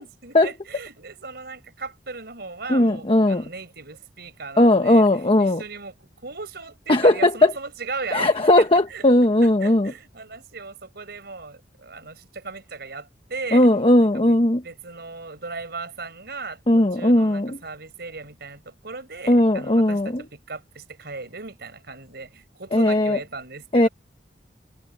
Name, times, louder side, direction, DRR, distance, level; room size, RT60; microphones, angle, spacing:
voice 1, 0.0-9.0 9.4-13.7 14.0-14.4 14.6-23.9, right 4 dB, 65° right, 5.0 m, -37 dB
voice 2, 2.7-3.4 4.6-5.6 6.9-7.5 8.1-9.9 13.5-14.6 16.7-17.6 19.3-20.2 22.7-23.2 23.7-23.9, left 1 dB, 30° left, 1.1 m, -17 dB
head